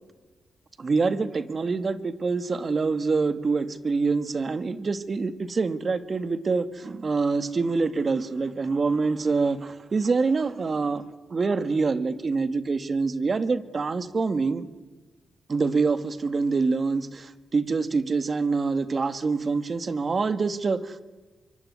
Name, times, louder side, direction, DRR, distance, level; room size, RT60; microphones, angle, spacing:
voice 1, 0.8-11.0 11.3-14.7 15.5-21.1, right 4 dB, 40° right, 13 dB, 1.9 m, -25 dB
25.0 x 24.0 x 9.8 m, 1.2 s
cardioid pair, 85°, 0 cm